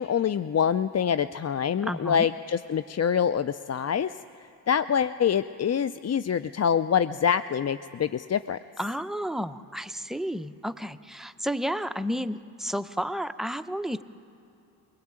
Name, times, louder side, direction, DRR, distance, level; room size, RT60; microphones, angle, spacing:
voice 1, 0.0-4.1 4.7-8.6, left 8 dB, 35° left, 14 dB, 0.6 m, -25 dB
voice 2, 1.8-2.3 8.8-14.0, equal, ahead, 9 dB, 0.9 m, -31 dB
23.0 x 20.0 x 8.9 m, 2.8 s
hypercardioid pair, 45°, 47 cm